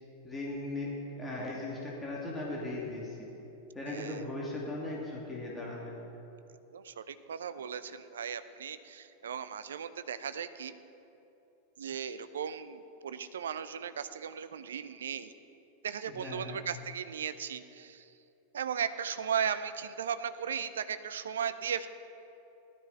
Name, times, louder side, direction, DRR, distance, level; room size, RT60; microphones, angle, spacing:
voice 1, 0.2-3.2 3.7-5.9 16.2-16.6, left 2 dB, 10° left, -5 dB, 2.5 m, -38 dB
voice 2, 3.9-4.3 6.7-10.7 11.8-15.3 15.8-18.1 18.5-21.9, right 8 dB, 65° right, 12 dB, 0.5 m, -36 dB
16.0 x 12.0 x 4.1 m, 2.9 s
figure-of-eight pair, 90°, 0 cm